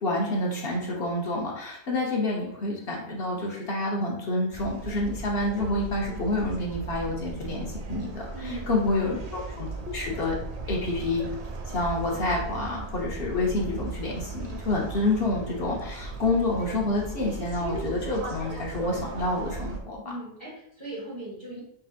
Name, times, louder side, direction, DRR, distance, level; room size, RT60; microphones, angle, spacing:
voice 1, 0.0-8.3 8.7-10.4 10.7-11.3 11.7-20.0, left 2 dB, 70° left, -3 dB, 1.1 m, -28 dB
sound 1, 4.5-19.8, right 3 dB, 50° right, 0.5 m, -37 dB
voice 2, 8.3-9.2 20.0-21.6, right 1 dB, 25° right, -8 dB, 1.6 m, -39 dB
4.7 x 3.8 x 2.4 m, 0.73 s
omnidirectional pair, 1.0 m